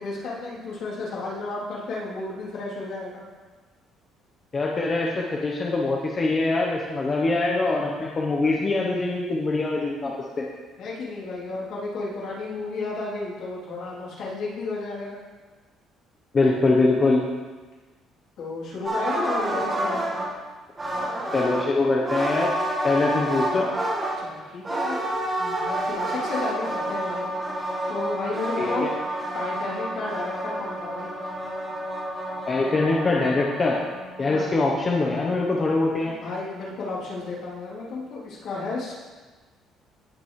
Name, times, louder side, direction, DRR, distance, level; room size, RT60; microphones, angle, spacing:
voice 1, 0.0-3.2 10.8-15.2 18.4-20.2 24.2-25.0 25.4-27.3 27.9-28.9 29.3-31.1 34.2-34.6 36.0-38.9, left 3 dB, 60° left, -6 dB, 3.0 m, -32 dB
voice 2, 4.5-10.4 16.3-17.3 21.3-22.5 22.8-23.7 28.6-28.9 32.5-33.8 34.2-36.1, left 3 dB, 25° left, -2 dB, 0.8 m, -23 dB
sound 1, 18.8-20.3 20.8-21.7 22.0-24.2 24.6-34.4, right 1 dB, 20° right, 1.5 m, -29 dB
17.0 x 5.9 x 3.1 m, 1.3 s
cardioid pair, 165°, 0 cm